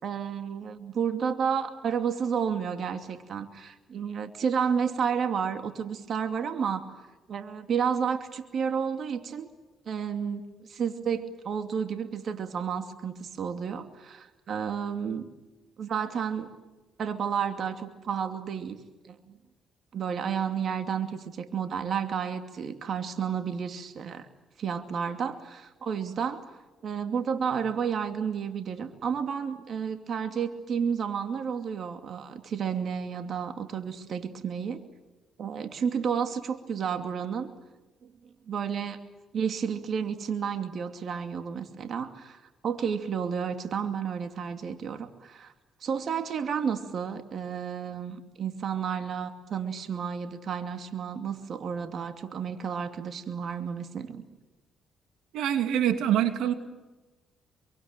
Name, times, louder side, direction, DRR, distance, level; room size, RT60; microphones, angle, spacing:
voice 1, 0.0-6.9 7.3-9.5 9.9-15.3 15.8-16.5 17.0-18.8 19.0-19.4 19.9-24.3 24.6-26.5 26.8-34.8 35.4-37.5 38.0-38.1 38.5-39.0 39.3-45.5 45.8-54.2, right 7 dB, 60° right, 7 dB, 2.6 m, -31 dB
voice 2, 55.3-56.5, right 10 dB, 85° right, 8 dB, 2.8 m, -25 dB
27.0 x 24.5 x 9.1 m, 1.1 s
cardioid pair, 90°, 0 cm